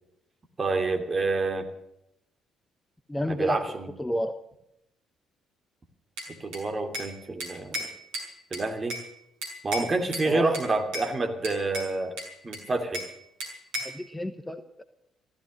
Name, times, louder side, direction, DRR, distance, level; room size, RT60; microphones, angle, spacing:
voice 1, 0.6-1.7 3.3-3.9 6.4-7.8 8.5-9.0 9.6-12.1 12.4-13.0, right 3 dB, 30° right, 4 dB, 2.9 m, -28 dB
voice 2, 3.1-3.7 4.0-4.4 10.2-10.6 13.8-14.8, left 1 dB, 10° left, 9 dB, 1.1 m, -30 dB
Bell / Glass, 6.2-7.1 7.4-9.1 9.4-10.3 10.5-11.1 11.4-13.1 13.4-14.0, equal, 65° right, 5.3 m, -36 dB
15.5 x 14.0 x 6.5 m, 0.81 s
figure-of-eight pair, 45°, 0 cm